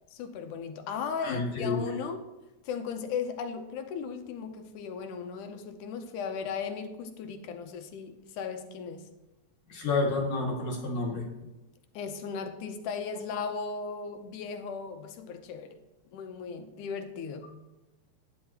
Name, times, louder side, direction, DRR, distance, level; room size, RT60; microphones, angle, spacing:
voice 1, 0.1-2.3 2.6-9.1 11.9-15.8 16.1-17.5, left 6 dB, 90° left, 7 dB, 2.5 m, -36 dB
voice 2, 1.2-1.8 9.7-11.3, left 3 dB, 55° left, -2 dB, 3.4 m, -29 dB
12.0 x 10.0 x 4.3 m, 1.0 s
omnidirectional pair, 3.4 m